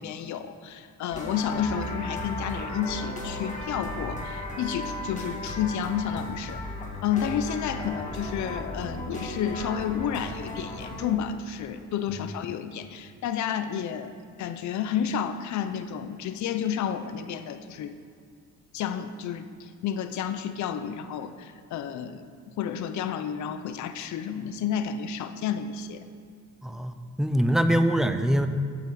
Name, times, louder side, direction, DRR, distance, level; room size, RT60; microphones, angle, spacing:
voice 1, 0.0-6.6 7.0-17.9 18.7-22.2 22.6-26.0, left 8 dB, 70° left, 10 dB, 0.7 m, -31 dB
sound 1, 1.1-11.1, left 1 dB, 25° left, 2.1 m, -35 dB
voice 2, 26.6-26.9 27.2-28.5, equal, ahead, 8 dB, 0.7 m, -23 dB
8.8 x 8.0 x 7.0 m, 2.2 s
cardioid pair, 90°, 30 cm